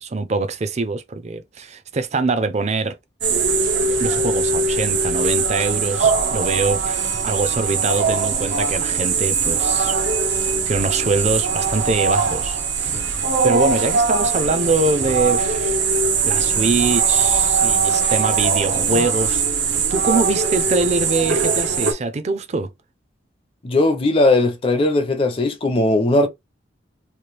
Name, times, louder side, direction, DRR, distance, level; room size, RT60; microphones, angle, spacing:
voice 1, 0.0-3.0 4.0-9.9 10.3-15.8 16.2-19.4 19.9-22.7, right 3 dB, 40° right, 0.5 m, -24 dB
sound 1, 3.2-21.9, right 5 dB, 75° right, 0.8 m, -20 dB
voice 2, 23.6-26.3, left 2 dB, 30° left, 0.5 m, -18 dB
3.1 x 2.4 x 3.3 m
head